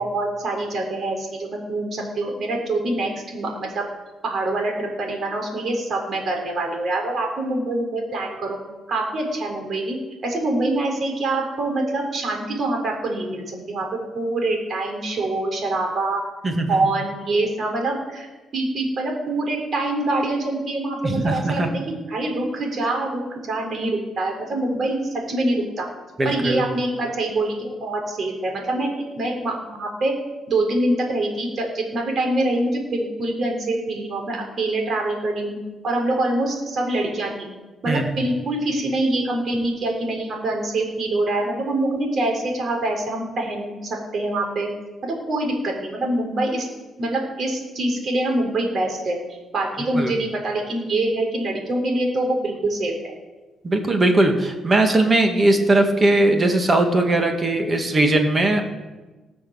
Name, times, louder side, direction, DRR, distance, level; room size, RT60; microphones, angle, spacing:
voice 1, 0.0-3.8 4.2-8.6 8.9-10.0 10.2-13.9 14.1-16.2 16.7-18.3 18.5-23.2 23.5-25.0 25.3-25.9 26.2-28.9 29.2-30.1 30.5-35.6 35.8-37.5 37.8-44.7 45.0-46.7 47.0-53.1, right 2 dB, 55° right, 1 dB, 4.0 m, -25 dB
voice 2, 16.4-16.8 21.0-21.7 26.2-26.6 37.9-38.1 49.9-50.1 53.6-58.6, right 2 dB, 30° right, 4 dB, 2.1 m, -19 dB
19.0 x 6.5 x 6.6 m, 1.2 s
cardioid pair, 90°, 0 cm